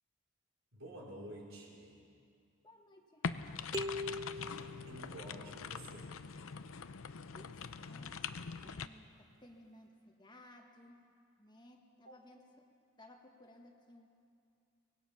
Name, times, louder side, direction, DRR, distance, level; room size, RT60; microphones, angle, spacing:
voice 1, 0.7-2.0 4.9-6.1 12.0-12.2, right 1 dB, 65° right, -2 dB, 4.4 m, -50 dB
voice 2, 2.6-4.3 7.3-11.0 11.4-12.7 13.0-14.1, left 1 dB, 20° left, 2 dB, 1.5 m, -59 dB
sound 1, 3.2-8.9, left 5 dB, 75° left, 0.7 m, -43 dB
sound 2, 3.7-5.6, left 1 dB, 20° right, 0.5 m, -42 dB
24.5 x 19.5 x 5.7 m, 2.4 s
head